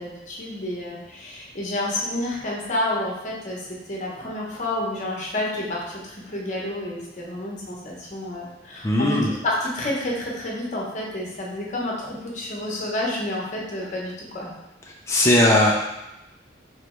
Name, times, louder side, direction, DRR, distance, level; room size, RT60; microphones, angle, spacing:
voice 1, 0.0-14.5, left 1 dB, 40° left, -3 dB, 0.9 m, -29 dB
voice 2, 8.8-9.3 15.1-15.7, left 1 dB, 15° left, -3 dB, 0.4 m, -18 dB
3.9 x 3.3 x 3.1 m, 0.93 s
head